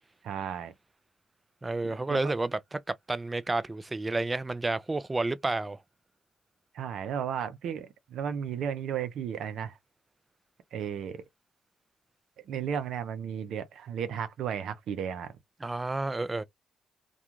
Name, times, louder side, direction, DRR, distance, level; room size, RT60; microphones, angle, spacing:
voice 1, 0.2-0.7 2.1-2.3 6.7-9.8 10.7-11.2 12.4-15.3, right 8 dB, 75° right, 0.6 m, -34 dB
voice 2, 1.6-2.8 3.1-5.8 15.6-16.4, right 2 dB, 20° right, 0.4 m, -30 dB
2.4 x 2.3 x 2.9 m
cardioid pair, 75°, 0 cm